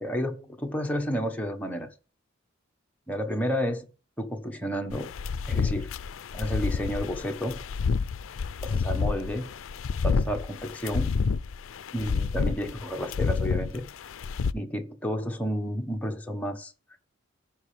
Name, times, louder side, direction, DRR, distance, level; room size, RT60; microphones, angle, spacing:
voice 1, 0.0-1.9 3.1-3.9 4.2-5.1 5.5-5.9 6.3-7.6 8.6-9.5 10.0-11.1 11.9-13.9 14.5-16.7, equal, 5° left, 1.1 m, -31 dB
sound 1, 4.9-14.5, left 5 dB, 70° left, 0.4 m, -29 dB
15.0 x 5.6 x 3.3 m
head